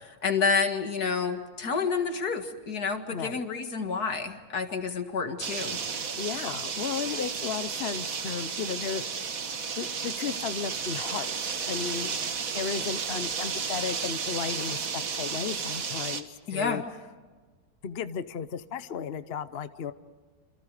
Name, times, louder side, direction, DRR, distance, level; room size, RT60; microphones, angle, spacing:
voice 1, 0.0-5.8 16.5-16.8, left 5 dB, 80° left, 6 dB, 2.4 m, -29 dB
voice 2, 3.1-3.4 6.2-9.3 9.8-12.2 12.5-16.3 16.5-16.8 17.8-19.9, left 7 dB, 50° left, 12 dB, 0.9 m, -34 dB
sound 1, 5.4-16.2, right 6 dB, 65° right, 1.8 m, -33 dB
28.0 x 27.0 x 5.0 m, 1.4 s
omnidirectional pair, 1.6 m